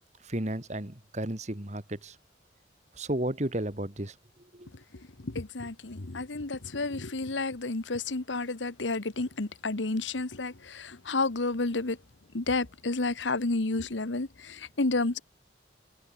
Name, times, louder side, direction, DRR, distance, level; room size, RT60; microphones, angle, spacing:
voice 1, 0.2-2.2 3.0-4.1 4.5-4.7, right 1 dB, 40° right, 2.2 m, -33 dB
voice 2, 5.2-12.0 12.3-15.2, left 3 dB, 85° left, 1.4 m, -31 dB
head